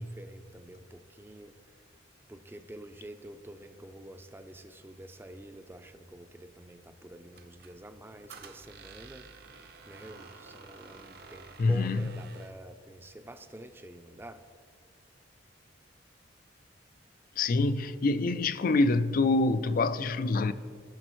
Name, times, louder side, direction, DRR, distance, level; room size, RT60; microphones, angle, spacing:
voice 1, 0.0-1.5 2.3-9.3 9.9-14.4, right 1 dB, 10° right, 0.5 m, -48 dB
Squeak, 7.3-12.6, right 4 dB, 55° right, 0.7 m, -51 dB
voice 2, 11.6-12.1 17.4-20.5, left 3 dB, 50° left, 0.4 m, -26 dB
17.5 x 6.2 x 3.1 m
head